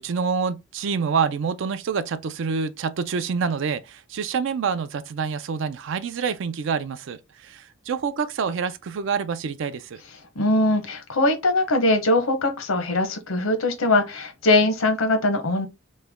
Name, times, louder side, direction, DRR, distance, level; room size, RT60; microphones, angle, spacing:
voice 1, 0.0-10.0, right 6 dB, 65° right, 0.4 m, -27 dB
voice 2, 10.3-15.7, left 2 dB, 85° left, 0.8 m, -21 dB
3.1 x 2.2 x 3.4 m
head